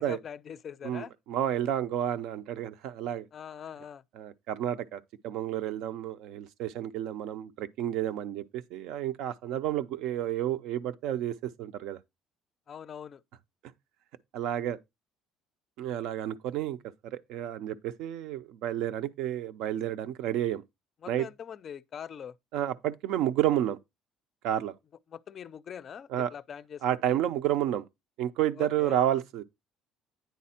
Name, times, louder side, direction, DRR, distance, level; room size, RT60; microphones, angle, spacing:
voice 1, 0.0-1.1 3.3-4.0 12.7-13.2 21.0-22.4 25.1-27.2 28.6-29.0, left 8 dB, 35° left, 0.4 m, -43 dB
voice 2, 0.8-3.3 4.2-12.0 14.3-14.8 15.8-16.8 17.0-20.6 21.1-21.3 22.5-23.8 24.4-24.7 26.1-26.3 26.8-27.8 28.2-29.4, right 11 dB, 70° right, 0.6 m, -30 dB
9.4 x 4.1 x 4.3 m
cardioid pair, 155°, 0 cm